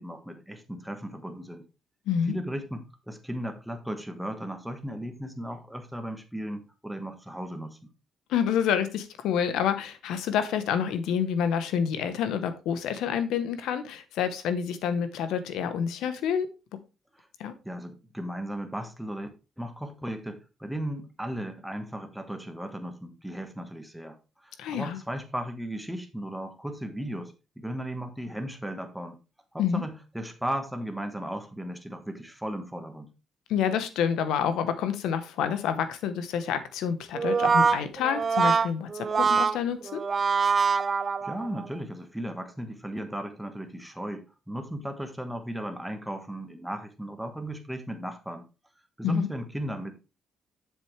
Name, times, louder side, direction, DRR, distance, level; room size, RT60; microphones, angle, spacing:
voice 1, 0.0-1.7 2.3-7.9 17.1-17.3 17.6-19.3 19.6-24.2 24.4-29.2 29.5-33.1 41.2-48.4 49.0-49.9, right 1 dB, 5° right, 1.4 m, -36 dB
voice 2, 2.1-2.4 8.3-16.5 17.4-17.5 24.6-25.0 29.6-29.8 33.5-40.0 49.0-49.3, left 8 dB, 90° left, 1.0 m, -28 dB
Brass instrument, 37.1-41.7, right 5 dB, 40° right, 0.3 m, -24 dB
7.4 x 6.9 x 3.3 m
cardioid pair, 90°, 0 cm